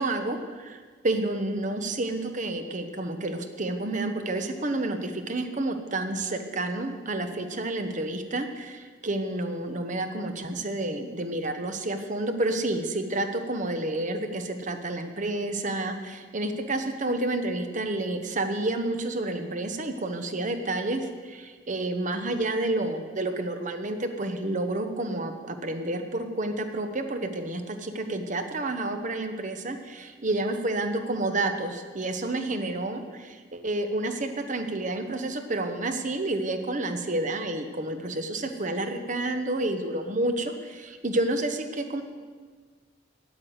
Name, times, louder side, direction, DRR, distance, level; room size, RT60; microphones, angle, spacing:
voice 1, 0.0-42.0, right 2 dB, 40° right, 7 dB, 1.0 m, -30 dB
9.6 x 9.0 x 7.9 m, 1.5 s
head